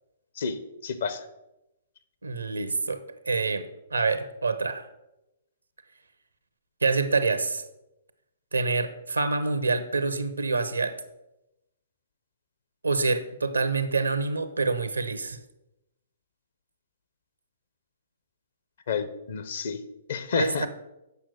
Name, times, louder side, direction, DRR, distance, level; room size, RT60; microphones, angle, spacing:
voice 1, 0.4-1.2 18.9-19.8 20.1-20.7, left 6 dB, 55° left, 10 dB, 1.0 m, -30 dB
voice 2, 2.2-4.9 6.8-7.6 8.5-11.0 12.8-15.4 20.3-20.7, right 4 dB, 75° right, 11 dB, 0.9 m, -26 dB
8.1 x 6.0 x 6.4 m, 0.91 s
figure-of-eight pair, 120°, 0 cm